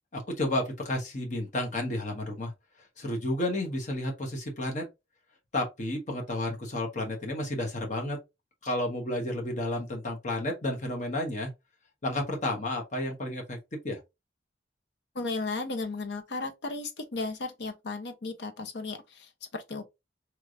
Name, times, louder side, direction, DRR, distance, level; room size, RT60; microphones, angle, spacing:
voice 1, 0.1-2.5 3.0-4.8 5.5-8.2 8.6-11.5 12.0-13.6 13.8-14.0, left 1 dB, 45° left, 1.1 m, -31 dB
voice 2, 15.1-19.8, left 3 dB, 70° left, 0.7 m, -35 dB
3.3 x 3.0 x 2.5 m
head